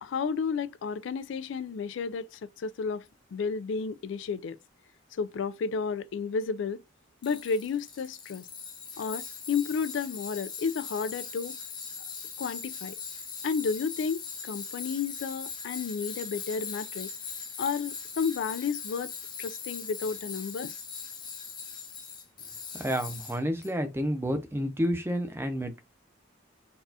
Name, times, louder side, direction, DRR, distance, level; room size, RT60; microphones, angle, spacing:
voice 1, 0.0-3.0 3.3-4.6 5.2-6.8 7.2-8.5 9.0-11.6 12.4-13.0 13.4-17.1 17.6-19.1 19.4-20.8, left 5 dB, 65° left, 0.3 m, -32 dB
Tools, 7.2-23.7, left 5 dB, 25° left, 0.8 m, -40 dB
voice 2, 22.7-25.8, equal, 10° right, 0.6 m, -30 dB
4.1 x 2.4 x 2.7 m
head